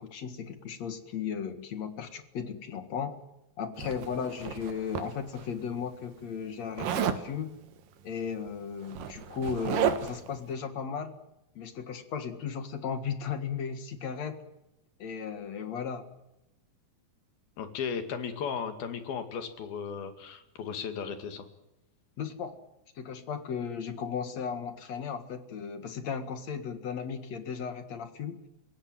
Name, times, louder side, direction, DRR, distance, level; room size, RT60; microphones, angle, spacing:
voice 1, 0.0-3.2 3.6-7.5 8.0-11.2 11.6-14.4 15.0-16.1 22.2-22.6 23.0-28.4, left 6 dB, 55° left, 9 dB, 2.7 m, -36 dB
Zipper (clothing), 3.8-5.5 6.8-7.3 8.4-8.5 8.8-10.3, right 9 dB, 70° right, 3.0 m, -32 dB
voice 2, 17.6-21.5, left 6 dB, 85° left, 8 dB, 4.1 m, -35 dB
30.0 x 17.0 x 7.8 m, 0.92 s
omnidirectional pair, 4.2 m